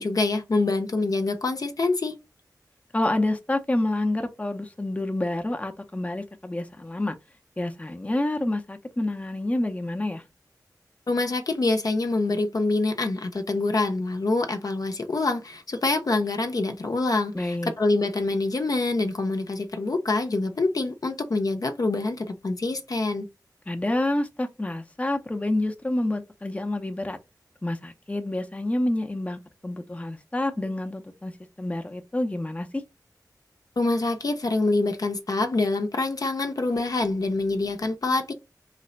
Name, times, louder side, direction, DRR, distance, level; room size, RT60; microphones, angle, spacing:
voice 1, 0.0-2.1 11.1-23.3 33.8-38.3, left 2 dB, 55° left, 0.6 m, -25 dB
voice 2, 2.9-7.2 7.6-10.2 17.3-17.7 23.7-27.2 27.6-31.3 31.6-32.8, left 1 dB, 20° left, 0.6 m, -28 dB
3.2 x 2.1 x 3.8 m
cardioid pair, 45°, 7 cm